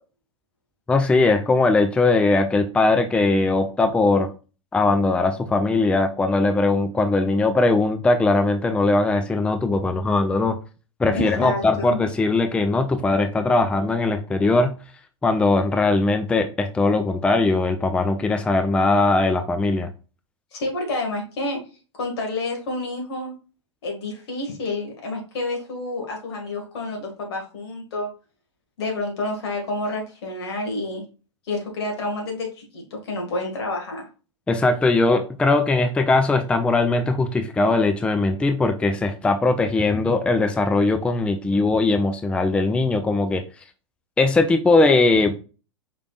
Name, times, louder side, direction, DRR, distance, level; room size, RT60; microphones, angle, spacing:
voice 1, 0.9-4.3 4.7-10.6 11.0-14.7 15.2-19.9 34.5-43.4 44.2-45.3, left 3 dB, 5° left, 7 dB, 0.4 m, -20 dB
voice 2, 11.1-12.0 20.5-21.6 21.9-23.3 23.8-28.1 28.8-31.0 31.5-34.1, left 2 dB, 60° left, 1 dB, 1.8 m, -29 dB
5.0 x 3.4 x 2.4 m, 0.34 s
figure-of-eight pair, 95°, 15 cm